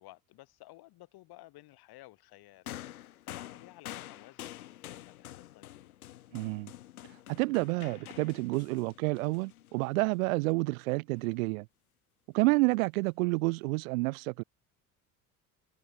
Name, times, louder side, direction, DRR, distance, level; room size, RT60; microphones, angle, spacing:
voice 1, 0.0-6.0, left 18 dB, 60° left, 3.9 m, -55 dB
sound 1, 2.7-10.2 11.2-11.3, left 13 dB, 90° left, 0.7 m, -47 dB
voice 2, 6.3-6.7 7.3-11.7 12.3-14.4, right 25 dB, 75° right, 0.8 m, -29 dB
hypercardioid pair, 65°, 42 cm